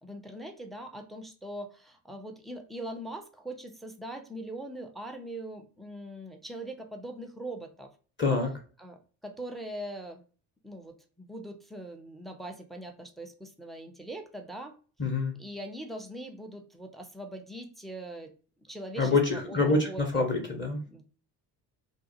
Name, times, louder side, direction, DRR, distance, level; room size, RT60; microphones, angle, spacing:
voice 1, 0.0-7.9 8.8-10.2 10.6-14.7 15.4-18.3 18.7-20.2 20.9-21.0, right 1 dB, ahead, 5 dB, 0.3 m, -41 dB
voice 2, 8.2-8.5 15.0-15.3 19.0-20.8, left 3 dB, 25° left, 1 dB, 0.7 m, -26 dB
2.6 x 2.0 x 2.6 m, 0.40 s
hypercardioid pair, 65°, 48 cm